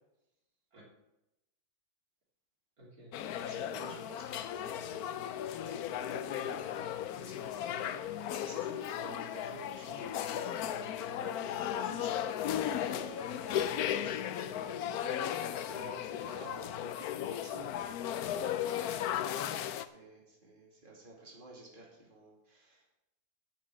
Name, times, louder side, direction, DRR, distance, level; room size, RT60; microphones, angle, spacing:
voice 1, 2.8-4.1 10.3-10.5 14.3-15.0 19.0-19.8, right 1 dB, 70° right, -4 dB, 3.5 m, -56 dB
sound 1, 3.1-19.9, left 10 dB, 80° left, 1.1 m, -36 dB
voice 2, 3.4-8.1 8.5-18.2 18.6-19.2 19.9-22.9, right 2 dB, 35° right, -3 dB, 2.9 m, -51 dB
10.0 x 6.2 x 7.3 m, 0.90 s
omnidirectional pair, 1.6 m